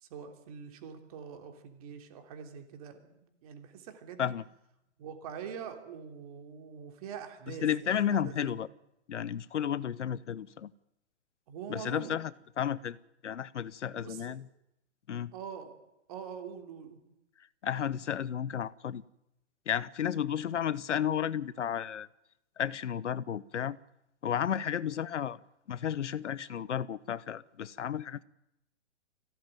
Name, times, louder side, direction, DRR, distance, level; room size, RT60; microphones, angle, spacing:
voice 1, 0.0-4.3 5.0-8.6 11.5-12.2 13.9-14.2 15.3-15.7 16.1-17.0, right 7 dB, 30° right, 3.1 m, -44 dB
voice 2, 7.6-8.7 9.1-10.7 11.7-12.3 12.6-13.0 13.2-14.5 15.1-15.3 17.6-19.0 19.7-22.1 22.6-23.8 24.2-25.4 25.7-28.2, left 9 dB, 75° left, 1.1 m, -32 dB
23.0 x 17.0 x 9.1 m
hypercardioid pair, 170°, 36 cm